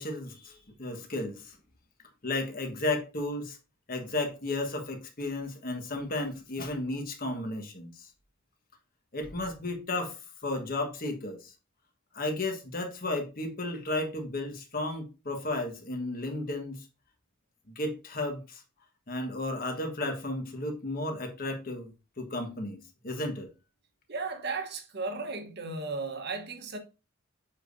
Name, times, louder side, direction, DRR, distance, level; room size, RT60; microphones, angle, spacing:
voice 1, 0.0-1.6 2.2-3.6 3.9-8.1 9.1-11.5 12.1-16.9 17.7-18.6 19.1-23.5, left 2 dB, 45° left, 1.4 m, -34 dB
voice 2, 24.1-26.8, right 3 dB, 55° right, 1.2 m, -35 dB
7.4 x 5.0 x 2.7 m
head